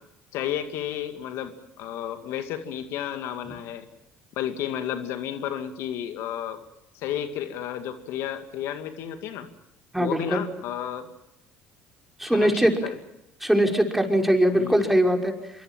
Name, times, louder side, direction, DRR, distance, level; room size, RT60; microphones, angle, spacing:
voice 1, 0.3-3.9 4.4-6.6 6.9-9.5 10.0-11.1 12.2-13.0 14.5-14.8, left 10 dB, 70° left, 8 dB, 2.2 m, -32 dB
voice 2, 9.9-10.4 12.2-12.8 13.4-15.3, equal, 5° right, 2 dB, 5.6 m, -21 dB
25.5 x 23.5 x 7.4 m, 0.83 s
hypercardioid pair, 70°, 5 cm